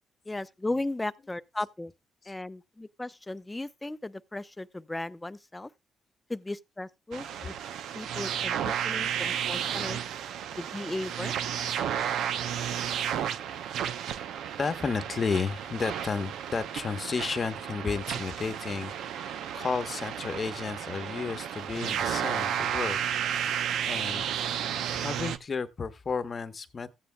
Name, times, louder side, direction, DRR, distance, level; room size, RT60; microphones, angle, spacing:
voice 1, 0.3-1.9 2.3-5.7 6.3-7.5 7.9-10.0 10.6-11.3, left 2 dB, 15° left, 0.6 m, -36 dB
sound 1, 7.1-25.4, right 9 dB, 80° right, 0.7 m, -32 dB
voice 2, 11.7-12.1 12.8-12.9 14.6-23.0 23.9-24.3 24.9-26.9, left 5 dB, 40° left, 1.0 m, -33 dB
15.0 x 9.3 x 2.2 m
cardioid pair, 90°, 0 cm